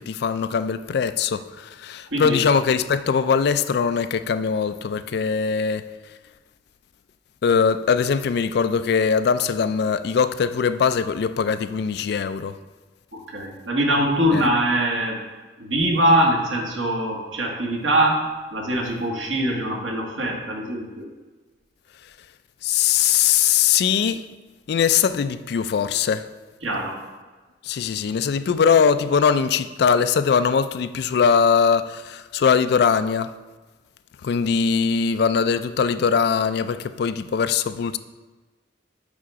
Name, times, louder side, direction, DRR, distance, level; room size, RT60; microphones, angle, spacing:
voice 1, 0.0-5.9 7.4-12.6 14.3-14.5 22.6-24.3 24.7-26.3 27.6-33.3 34.2-38.0, left 6 dB, 55° left, 0.3 m, -21 dB
voice 2, 2.1-2.4 13.1-15.2 15.6-18.2 18.5-21.1 26.6-27.0, right 1 dB, 85° right, 1.4 m, -22 dB
7.3 x 4.8 x 4.6 m
head